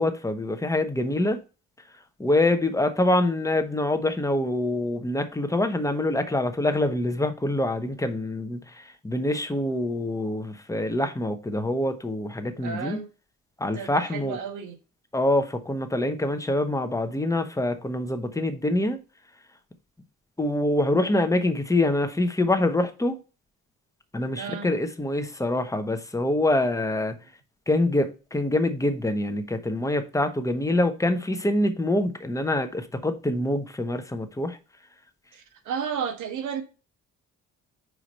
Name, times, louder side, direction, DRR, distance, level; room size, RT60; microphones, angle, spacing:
voice 1, 0.0-1.4 2.2-13.0 13.6-14.4 15.1-19.0 20.4-23.2 24.1-27.2 27.7-34.6, left 1 dB, 10° left, 1.2 m, -25 dB
voice 2, 12.6-13.1 13.7-14.8 24.3-24.7 35.3-36.6, right 7 dB, 85° right, 1.4 m, -33 dB
4.9 x 4.9 x 5.4 m
cardioid pair, 90°, 30 cm